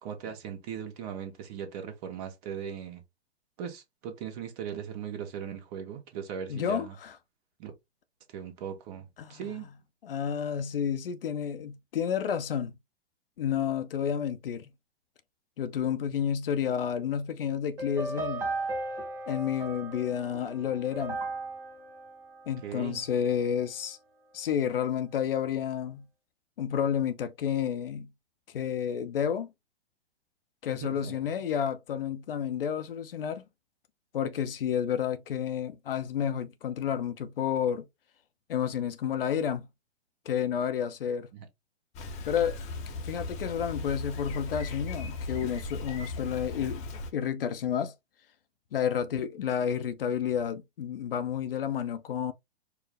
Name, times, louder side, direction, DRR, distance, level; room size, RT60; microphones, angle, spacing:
voice 1, 0.0-3.0 3.6-6.9 7.6-7.7 8.3-9.7 22.6-23.0 30.7-31.1 41.3-41.5, right 8 dB, 35° right, 1.1 m, -39 dB
voice 2, 6.5-7.1 9.2-9.4 10.0-12.7 13.4-14.7 15.6-18.5 19.3-21.2 22.5-24.0 24.3-26.0 26.6-28.1 28.5-29.5 30.6-33.4 34.1-37.8 38.5-39.7 40.3-41.3 42.3-42.6 43.0-46.8 47.1-47.9 48.7-52.3, left 8 dB, 55° left, 0.6 m, -30 dB
sound 1, 17.8-23.1, right 2 dB, 10° right, 0.4 m, -36 dB
Bicycle, 41.9-47.1, left 2 dB, 20° left, 0.7 m, -37 dB
4.6 x 2.0 x 3.4 m
figure-of-eight pair, 115°, 33 cm